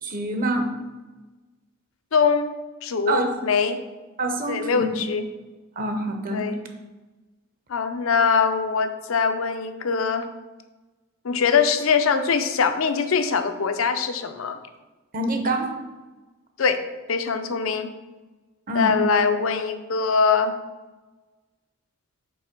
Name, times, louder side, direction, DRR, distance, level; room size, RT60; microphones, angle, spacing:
voice 1, 0.0-0.7 3.1-3.4 4.2-4.9 5.8-6.5 15.1-15.7 18.7-19.0, right 2 dB, 40° right, 5 dB, 0.8 m, -26 dB
voice 2, 2.1-2.5 2.8-3.8 4.5-5.3 6.3-6.6 7.7-10.3 11.2-14.6 16.6-16.8 17.1-17.9 18.7-20.6, left 5 dB, 75° left, 9 dB, 0.6 m, -22 dB
5.4 x 4.2 x 5.9 m, 1.2 s
head